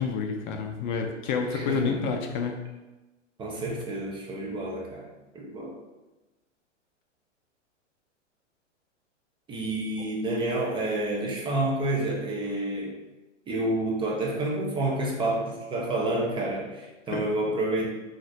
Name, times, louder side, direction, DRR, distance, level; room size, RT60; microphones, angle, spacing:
voice 1, 0.0-2.6 17.1-17.3, left 5 dB, 40° left, 3 dB, 0.5 m, -29 dB
voice 2, 1.5-2.1 3.4-5.1 5.3-5.8 9.5-13.0 13.5-17.9, right 1 dB, 15° right, -3 dB, 0.5 m, -29 dB
5.8 x 2.5 x 2.6 m, 1.1 s
hypercardioid pair, 115°, 37 cm